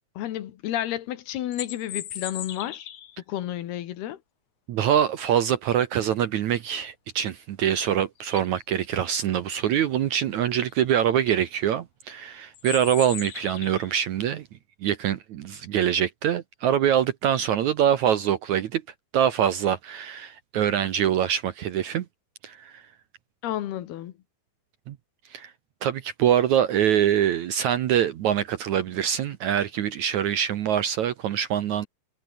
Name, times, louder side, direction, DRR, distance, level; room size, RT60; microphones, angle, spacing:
voice 1, 0.2-2.9 3.3-4.2 23.4-24.1, left 12 dB, 85° left, 3.5 m, -31 dB
sound 1, 1.3-3.2 7.7-7.8 8.2-8.6 10.7-10.8 11.1-11.4 12.5-13.9, left 10 dB, 55° left, 2.1 m, -37 dB
voice 2, 4.7-14.5 14.8-18.8 19.1-22.1 22.4-22.8 24.9-25.0 25.3-25.5 25.8-31.9, right 10 dB, 70° right, 1.9 m, -24 dB
omnidirectional pair, 4.5 m